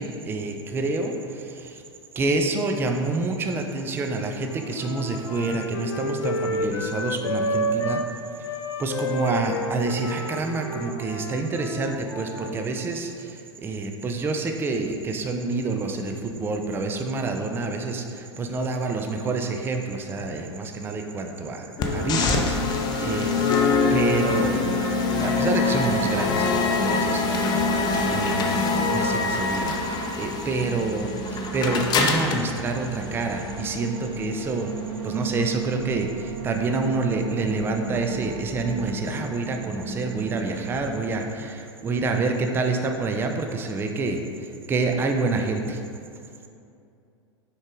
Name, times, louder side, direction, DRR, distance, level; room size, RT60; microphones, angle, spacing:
voice 1, 0.0-1.8 2.2-8.0 8.8-24.7 25.2-34.7 35.0-45.8, right 3 dB, 15° right, 4 dB, 0.4 m, -28 dB
Wind instrument woodwind instrument, 4.2-8.1 8.4-12.7, left 1 dB, 65° left, 0.5 m, -30 dB
sound 1, 21.8-33.8, left 4 dB, 30° left, 0.7 m, -24 dB
sound 2, 24.3-40.8, right 5 dB, 55° right, 0.7 m, -35 dB
6.4 x 4.6 x 3.6 m, 2.5 s
figure-of-eight pair, 90°, 15 cm